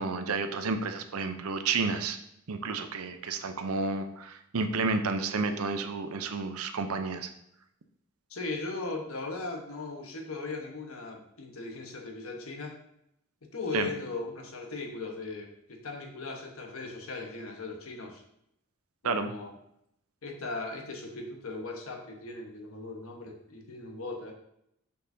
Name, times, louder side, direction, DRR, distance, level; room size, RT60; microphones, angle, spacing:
voice 1, 0.0-2.2 2.5-7.3 13.7-13.9 19.0-19.3, right 4 dB, 85° right, 8 dB, 0.6 m, -31 dB
voice 2, 8.3-12.8 13.5-18.2 19.0-19.6 20.2-24.3, left 3 dB, 75° left, 2 dB, 1.1 m, -38 dB
6.5 x 5.4 x 2.7 m, 0.77 s
head